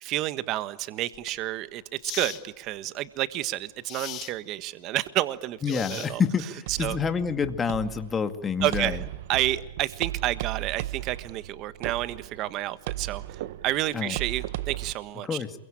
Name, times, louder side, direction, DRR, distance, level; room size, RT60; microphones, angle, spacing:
voice 1, 0.0-6.2 6.7-7.0 8.6-9.0 9.3-15.4, right 15 dB, 40° right, 13 dB, 1.5 m, -30 dB
sound 1, 1.1-1.3 2.0-2.4 3.9-4.4 5.6-6.4, left 14 dB, 35° left, 1.9 m, -38 dB
voice 2, 5.6-9.0 13.9-14.2 15.2-15.5, left 6 dB, 20° left, 8 dB, 2.3 m, -28 dB
sound 2, 6.7-14.9, right 15 dB, 65° right, 1.2 m, -36 dB
28.0 x 23.0 x 8.9 m, 0.86 s
hypercardioid pair, 125°, 0 cm